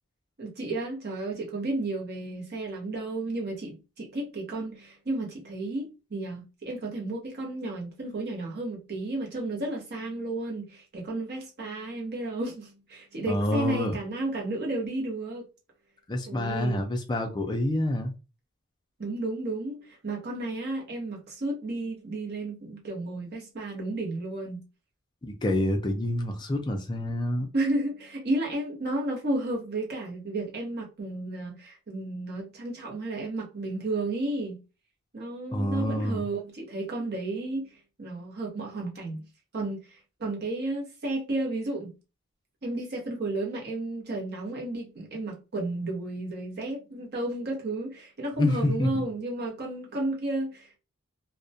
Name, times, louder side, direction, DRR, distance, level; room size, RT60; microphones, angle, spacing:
voice 1, 0.4-15.5 16.3-16.8 19.0-24.6 27.5-34.6 35.1-39.2 39.5-41.9 42.6-50.8, right 2 dB, 50° right, 0.8 m, -32 dB
voice 2, 13.3-14.0 16.1-18.1 25.2-27.5 35.5-36.2 48.4-48.9, left 1 dB, 20° left, 0.4 m, -27 dB
2.2 x 2.1 x 2.6 m
head